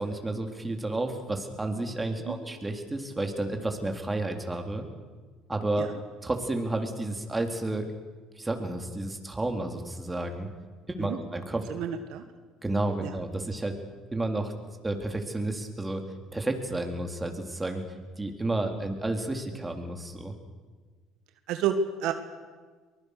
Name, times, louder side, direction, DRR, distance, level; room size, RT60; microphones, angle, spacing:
voice 1, 0.0-4.9 5.5-5.9 6.2-7.9 8.4-10.5 10.9-11.6 12.6-13.8 14.1-14.5 14.8-16.0 16.3-17.8 18.2-20.3, right 2 dB, 15° right, 4 dB, 3.6 m, -31 dB
voice 2, 11.7-12.2 13.0-13.1 21.5-22.1, right 7 dB, 70° right, 8 dB, 1.5 m, -30 dB
23.5 x 20.5 x 6.7 m, 1.4 s
supercardioid pair, 75°, 0 cm